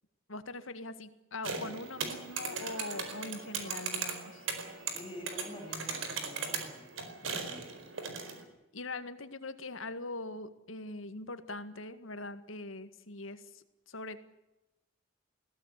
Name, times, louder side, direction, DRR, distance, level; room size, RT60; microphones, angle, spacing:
voice 1, 0.3-4.5 8.7-14.2, left 2 dB, 80° left, 11 dB, 2.0 m, -42 dB
sound 1, 1.4-8.4, right 5 dB, 75° right, 4.4 m, -38 dB
voice 2, 4.9-6.9 7.2-7.7, left 1 dB, 25° left, 4 dB, 4.7 m, -47 dB
21.5 x 16.5 x 9.9 m, 0.97 s
head